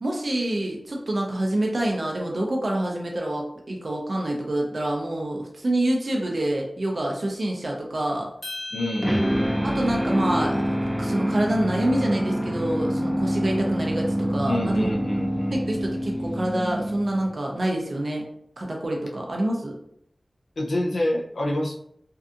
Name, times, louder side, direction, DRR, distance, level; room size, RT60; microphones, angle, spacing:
voice 1, 0.0-8.3 9.6-10.6 11.0-14.9 15.5-18.3 18.6-19.7, right 1 dB, 65° right, 0 dB, 0.5 m, -26 dB
sound 1, 8.4-12.8, left 2 dB, 55° left, 0.8 m, -42 dB
voice 2, 8.7-9.2 14.5-15.6 20.6-21.7, left 1 dB, 80° left, -2 dB, 0.4 m, -27 dB
sound 2, 9.0-17.3, equal, 15° right, 0.5 m, -26 dB
2.6 x 2.4 x 2.4 m, 0.71 s
wide cardioid pair, 45°, 0 cm